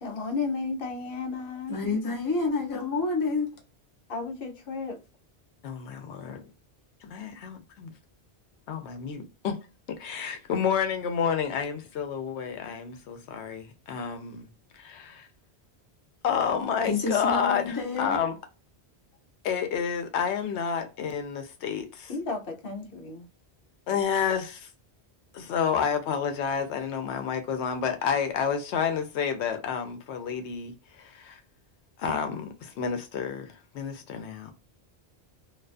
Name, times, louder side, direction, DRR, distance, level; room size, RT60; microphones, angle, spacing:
voice 1, 0.0-2.2 4.1-5.0 22.1-23.2, left 4 dB, 60° left, 0.8 m, -33 dB
voice 2, 1.7-3.6 16.8-18.2, left 3 dB, 20° left, 0.7 m, -28 dB
voice 3, 5.6-6.4 7.0-7.9 8.7-9.6 9.9-14.5 14.7-15.3 16.2-18.3 19.4-22.1 23.9-24.7 25.3-31.4 32.0-34.5, left 7 dB, 90° left, 0.9 m, -30 dB
2.4 x 2.3 x 2.3 m
omnidirectional pair, 1.1 m